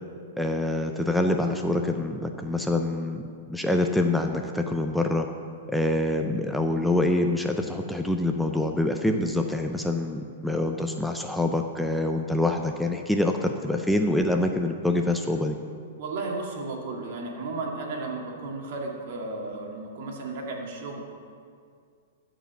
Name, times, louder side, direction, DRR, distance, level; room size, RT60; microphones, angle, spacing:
voice 1, 0.4-5.3 5.7-15.6, left 1 dB, ahead, 4 dB, 0.6 m, -26 dB
voice 2, 16.0-21.1, right 3 dB, 60° right, 0 dB, 2.2 m, -34 dB
13.5 x 5.1 x 7.0 m, 2.2 s
hypercardioid pair, 120°, 0 cm